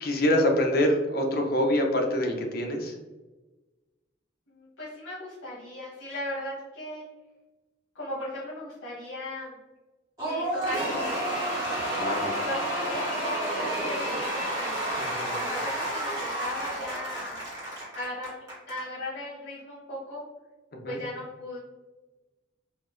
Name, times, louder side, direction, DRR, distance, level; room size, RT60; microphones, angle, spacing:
voice 1, 0.0-2.9 12.0-12.4 15.0-15.3 20.8-21.0, left 1 dB, 50° left, 2 dB, 0.6 m, -25 dB
voice 2, 4.5-7.0 7.9-9.5 10.2-11.3 11.7-12.0 12.4-14.9 15.3-17.4 17.9-20.2 20.8-21.6, left 1 dB, 75° left, -8 dB, 1.0 m, -37 dB
Cheering / Applause / Crowd, 10.2-18.8, right 1 dB, 20° right, 1.1 m, -30 dB
3.7 x 2.2 x 2.5 m, 1.2 s
head